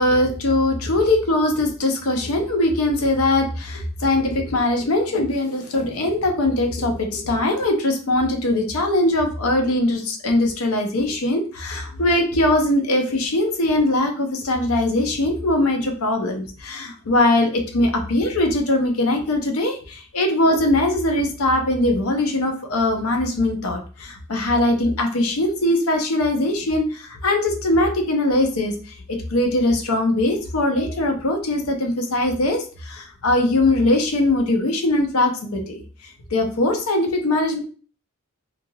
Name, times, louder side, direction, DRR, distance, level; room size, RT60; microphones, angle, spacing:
voice 1, 0.0-35.8 36.3-37.6, left 1 dB, 75° left, 4 dB, 0.6 m, -21 dB
3.1 x 2.4 x 2.3 m, 0.39 s
head